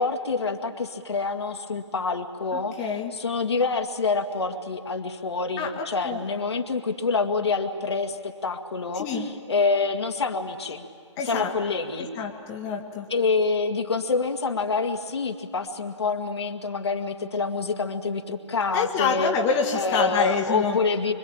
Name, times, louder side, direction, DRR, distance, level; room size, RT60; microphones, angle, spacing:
voice 1, 0.0-10.9 11.2-12.1 13.1-19.3 19.7-21.1, left 4 dB, 60° left, 4 dB, 2.0 m, -27 dB
voice 2, 2.5-3.1 5.6-6.2 9.0-9.3 11.2-11.5 12.0-13.0 18.7-20.8, left 6 dB, 20° left, 1 dB, 1.5 m, -27 dB
25.5 x 23.5 x 8.8 m, 2.2 s
figure-of-eight pair, 135°, 16 cm